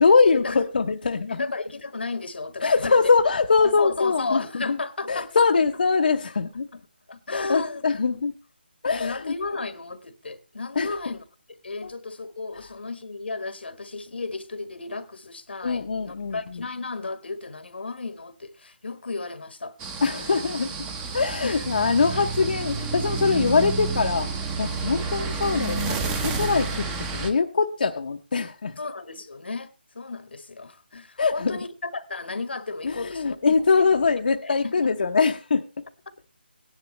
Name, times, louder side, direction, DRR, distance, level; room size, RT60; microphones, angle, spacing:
voice 1, 0.0-1.4 2.6-4.8 5.1-6.7 7.3-8.3 8.8-9.3 10.8-10.9 11.8-11.9 15.6-16.4 20.0-20.7 21.1-26.9 27.1-28.8 31.2-31.6 32.8-35.6, left 4 dB, 60° left, 0.8 m, -22 dB
voice 2, 1.3-3.0 3.6-5.3 6.7-6.8 7.1-7.8 8.1-8.2 8.9-11.2 11.6-19.9 21.4-21.7 28.8-33.4 33.8-34.0 34.4-35.1, left 3 dB, 80° left, 1.4 m, -34 dB
sound 1, 19.8-27.3, right 4 dB, 10° right, 0.8 m, -30 dB
17.0 x 10.5 x 3.1 m
figure-of-eight pair, 165°, 6 cm